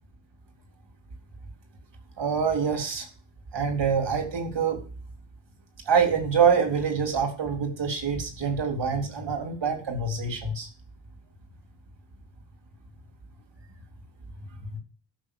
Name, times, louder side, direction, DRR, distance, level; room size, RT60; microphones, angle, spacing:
voice 1, 2.2-3.1 3.5-4.8 5.9-10.7, right 6 dB, 60° right, 4 dB, 4.0 m, -25 dB
13.5 x 6.3 x 6.9 m, 0.38 s
wide cardioid pair, 130°, 48 cm